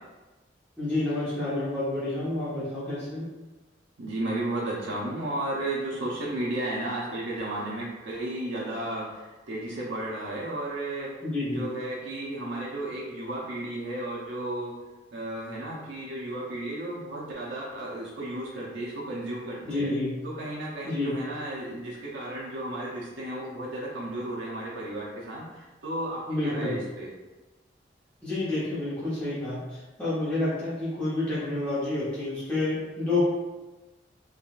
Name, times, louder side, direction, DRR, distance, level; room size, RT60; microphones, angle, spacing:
voice 1, 0.8-3.2 11.2-11.7 19.6-20.1 20.8-21.1 26.3-26.8 28.2-33.2, left 2 dB, 5° left, -12 dB, 0.8 m, -29 dB
voice 2, 4.0-11.1 11.5-14.7 15.1-19.9 20.2-27.1, right 1 dB, 75° right, -5 dB, 0.6 m, -33 dB
3.5 x 2.4 x 2.4 m, 1.1 s
head